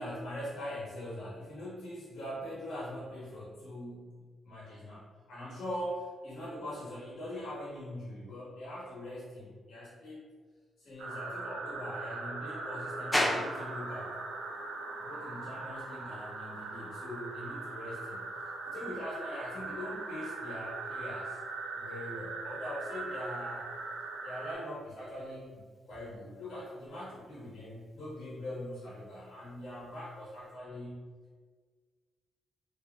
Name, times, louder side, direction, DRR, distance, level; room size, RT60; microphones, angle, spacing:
voice 1, 0.0-4.1 4.4-10.2 10.8-14.1 15.0-18.2 18.6-21.4 21.7-23.7 24.2-31.0, left 1 dB, 75° left, -7 dB, 1.4 m, -42 dB
sound 1, 11.0-24.5, right 3 dB, 85° right, 0.6 m, -40 dB
sound 2, 13.1-30.6, left 1 dB, 10° left, 0.5 m, -43 dB
4.7 x 3.1 x 2.5 m, 1.5 s
cardioid pair, 110°, 0 cm